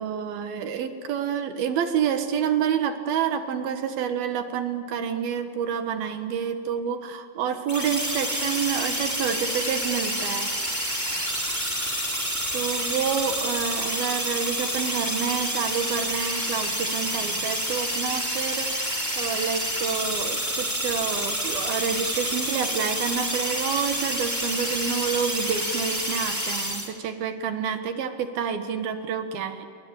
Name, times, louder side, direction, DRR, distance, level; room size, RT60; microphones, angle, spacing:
voice 1, 0.0-10.5 12.5-29.7, right 7 dB, 65° right, 7 dB, 2.8 m, -28 dB
sound 1, 7.7-26.9, equal, 5° right, 3.1 m, -28 dB
29.5 x 22.0 x 8.3 m, 2.4 s
omnidirectional pair, 5.8 m